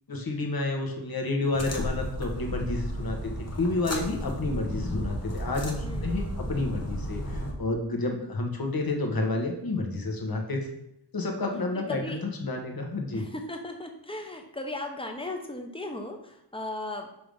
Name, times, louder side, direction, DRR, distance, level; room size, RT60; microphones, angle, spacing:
voice 1, 0.1-3.3 3.6-10.6 11.1-13.2, left 2 dB, 55° left, 2 dB, 1.2 m, -30 dB
sound 1, 1.5-7.5, equal, 35° left, 1.1 m, -33 dB
voice 2, 5.8-6.3 8.0-8.3 11.7-12.2 13.1-17.1, left 1 dB, 10° left, 4 dB, 0.8 m, -37 dB
5.8 x 3.4 x 5.2 m, 0.82 s
wide cardioid pair, 105°, 43 cm